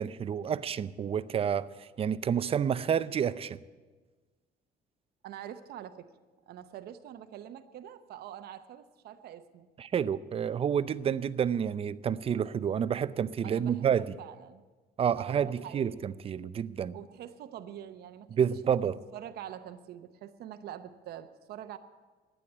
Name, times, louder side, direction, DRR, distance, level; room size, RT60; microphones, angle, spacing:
voice 1, 0.0-1.7 2.0-3.6 9.8-14.1 15.0-17.0 18.3-19.0, right 8 dB, 35° right, 0.5 m, -29 dB
voice 2, 5.2-6.1 6.5-9.7 13.4-14.6 15.2-16.0 16.9-18.8 19.1-21.8, right 10 dB, 70° right, 0.8 m, -45 dB
12.0 x 9.3 x 9.1 m
cardioid pair, 110°, 17 cm